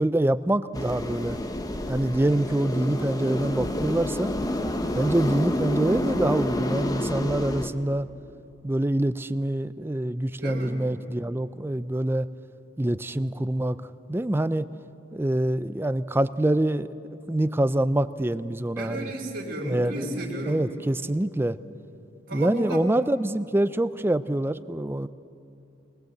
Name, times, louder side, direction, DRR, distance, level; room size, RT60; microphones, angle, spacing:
voice 1, 0.0-1.4 1.9-4.3 4.9-8.1 8.6-12.3 12.8-13.8 14.1-14.7 15.1-19.1 19.7-20.1 20.5-21.6 22.3-25.1, right 1 dB, 10° right, 14 dB, 0.4 m, -25 dB
sound 1, 0.7-7.7, left 1 dB, 20° left, 0.9 m, -29 dB
voice 2, 10.4-10.8 18.7-20.7 22.3-22.9, right 1 dB, 65° right, -5 dB, 3.0 m, -33 dB
22.0 x 20.0 x 7.9 m, 2.7 s
head